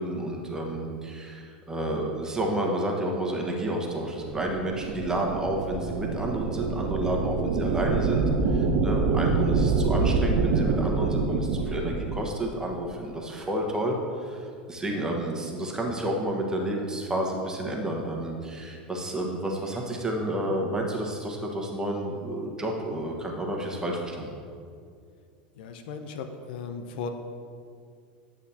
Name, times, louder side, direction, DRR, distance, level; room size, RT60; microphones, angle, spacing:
voice 1, 0.0-24.3, right 1 dB, 15° right, 0 dB, 1.3 m, -30 dB
sound 1, 4.2-12.3, right 4 dB, 65° right, 0.8 m, -26 dB
voice 2, 25.6-27.1, left 5 dB, 65° left, 7 dB, 0.6 m, -36 dB
9.1 x 7.2 x 2.9 m, 2.2 s
hypercardioid pair, 95°, 5 cm